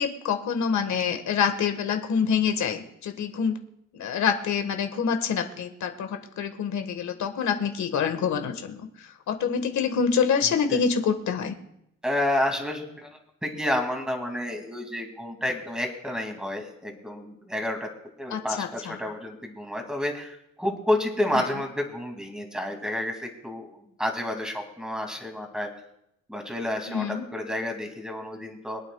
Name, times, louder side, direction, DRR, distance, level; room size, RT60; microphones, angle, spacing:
voice 1, 0.0-3.6 3.9-11.5 18.3-19.0 21.3-21.4 26.9-27.2, left 6 dB, 70° left, 6 dB, 1.6 m, -26 dB
voice 2, 12.0-13.1 13.4-17.9 18.2-23.7 24.0-25.7 26.3-28.8, left 1 dB, ahead, 3 dB, 2.5 m, -30 dB
25.5 x 8.9 x 2.4 m, 0.79 s
cardioid pair, 90°, 30 cm